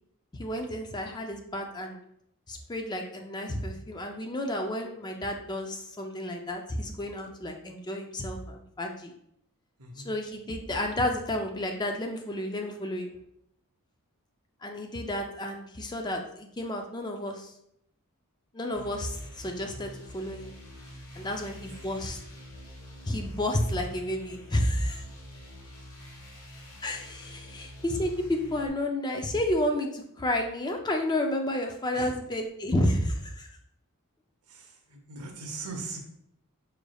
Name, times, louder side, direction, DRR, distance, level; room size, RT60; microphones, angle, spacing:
voice 1, 0.3-2.0 2.5-9.1 10.0-13.1 14.6-17.5 18.5-20.5 21.1-22.2 23.1-25.1 26.8-33.5, left 1 dB, 20° left, 3 dB, 0.4 m, -31 dB
voice 2, 9.8-10.2 21.2-21.3 21.7-22.0 31.9-32.2 34.5-36.0, right 3 dB, 75° right, 3 dB, 0.8 m, -41 dB
sound 1, 18.7-28.7, equal, 75° left, 1.1 m, -47 dB
4.9 x 3.2 x 2.3 m, 0.74 s
head